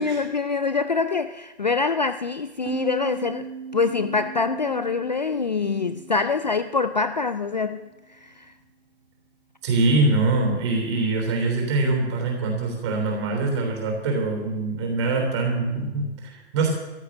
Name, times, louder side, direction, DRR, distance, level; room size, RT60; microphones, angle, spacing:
voice 1, 0.0-7.8 8.1-8.5, left 4 dB, 40° left, 11 dB, 0.4 m, -25 dB
sound 1, 2.7-8.0, right 6 dB, 45° right, 2.7 m, -38 dB
voice 2, 9.6-16.7, right 3 dB, 25° right, 2 dB, 3.4 m, -24 dB
14.0 x 11.0 x 6.3 m, 1.1 s
hypercardioid pair, 175°, 34 cm